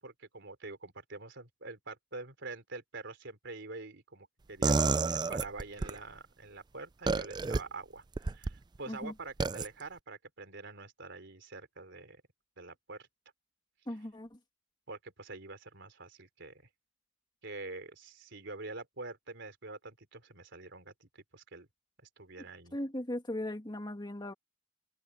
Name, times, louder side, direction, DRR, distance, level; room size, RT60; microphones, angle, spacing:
voice 1, 0.0-4.8 5.1-12.2 12.6-13.1 14.9-16.6 17.4-21.7 22.2-22.8, right 3 dB, 65° right, 4.0 m, -46 dB
sound 1, 4.6-6.0 7.1-7.6 8.2-8.5 9.4-9.7, right 4 dB, 20° right, 0.4 m, -29 dB
voice 2, 13.9-14.4 22.7-24.3, left 1 dB, 25° left, 2.2 m, -38 dB
head